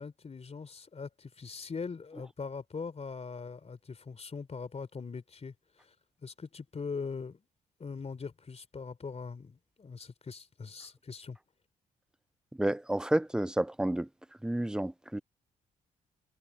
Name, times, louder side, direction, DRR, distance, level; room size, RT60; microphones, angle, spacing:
voice 1, 0.0-5.9 6.2-7.5 7.8-11.4, left 5 dB, 40° left, 3.8 m, -41 dB
voice 2, 12.6-14.1 14.4-15.2, right 1 dB, 5° right, 0.6 m, -30 dB
supercardioid pair, 55°, 16 cm